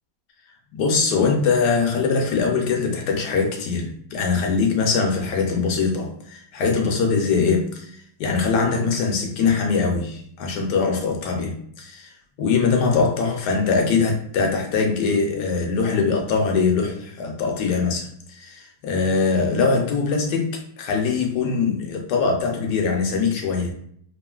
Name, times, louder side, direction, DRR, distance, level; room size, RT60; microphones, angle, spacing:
voice 1, 0.7-12.1 12.4-23.7, left 4 dB, 70° left, 2 dB, 1.1 m, -22 dB
3.0 x 2.4 x 2.3 m, 0.63 s
omnidirectional pair, 2.0 m